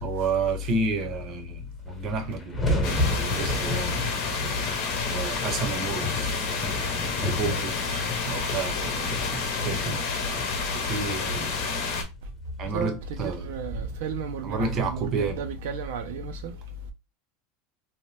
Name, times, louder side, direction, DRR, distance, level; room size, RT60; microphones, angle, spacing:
voice 1, 0.0-4.0 5.0-6.6 7.2-10.0 10.7-11.6 12.6-13.5 14.4-15.4, right 4 dB, 35° right, 0.7 m, -31 dB
sound 1, 1.4-1.5 1.7-16.0, left 1 dB, 15° left, 1.0 m, -34 dB
sound 2, 2.8-12.0, left 4 dB, 60° left, 0.9 m, -29 dB
voice 2, 12.7-16.5, right 5 dB, 80° right, 0.4 m, -33 dB
2.7 x 2.1 x 3.3 m
supercardioid pair, 150°, 0 cm